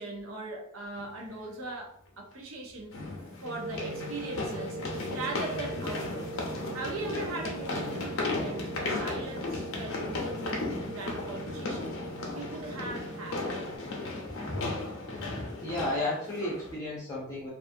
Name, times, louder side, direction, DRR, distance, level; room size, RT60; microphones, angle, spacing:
voice 1, 0.0-3.0 3.4-6.4 6.7-12.0 12.3-13.5, right 2 dB, 80° right, 0 dB, 0.6 m, -40 dB
sound 1, 1.0-1.1 2.9-16.8, left 2 dB, 80° left, 0.6 m, -35 dB
sound 2, 3.4-13.8, right 3 dB, 40° right, 0.3 m, -42 dB
voice 2, 15.2-17.5, left 1 dB, 15° left, -7 dB, 0.5 m, -33 dB
2.5 x 2.3 x 2.6 m, 0.66 s
head